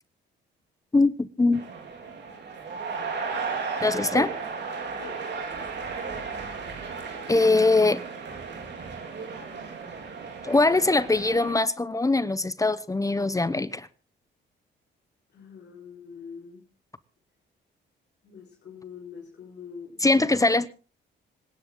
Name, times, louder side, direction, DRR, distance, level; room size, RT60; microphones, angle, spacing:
voice 1, 0.9-1.6 3.8-4.3 7.3-8.0 10.4-13.9 20.0-20.7, left 2 dB, 15° left, 0.8 m, -22 dB
sound 1, 1.5-11.5, right 5 dB, 60° right, 4.0 m, -35 dB
voice 2, 15.3-16.6 18.2-20.1, left 6 dB, 60° left, 4.7 m, -44 dB
26.0 x 10.0 x 3.8 m
cardioid pair, 90°, 20 cm